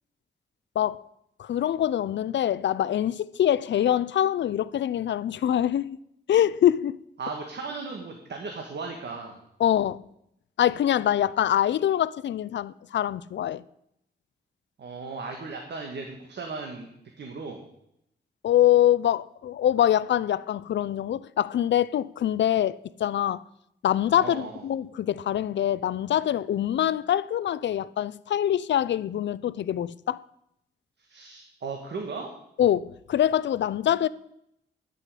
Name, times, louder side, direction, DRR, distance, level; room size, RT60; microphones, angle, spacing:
voice 1, 1.4-6.0 6.3-7.0 9.6-10.0 10.6-13.6 18.4-23.4 23.8-30.2 32.6-34.1, left 11 dB, 75° left, 0.5 m, -24 dB
voice 2, 7.2-9.4 14.8-16.9 17.2-17.6 24.2-24.6 31.1-32.3, right 4 dB, 65° right, 1.6 m, -36 dB
11.0 x 5.7 x 8.3 m
wide cardioid pair, 115°, 19 cm